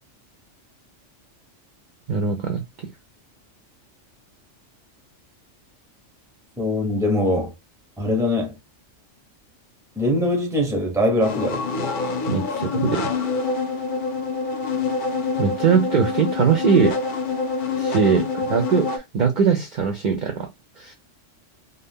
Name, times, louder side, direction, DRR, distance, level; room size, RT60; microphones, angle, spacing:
voice 1, 2.1-2.6 12.3-13.0 15.4-17.0 17.8-20.5 20.8-20.9, right 6 dB, 55° right, 0.5 m, -21 dB
voice 2, 6.6-7.5 8.0-8.5 10.0-11.7 12.5-12.6, left 1 dB, 5° right, 0.6 m, -22 dB
sound 1, 11.2-19.0, left 4 dB, 55° left, 0.6 m, -26 dB
2.6 x 2.2 x 3.5 m
omnidirectional pair, 1.3 m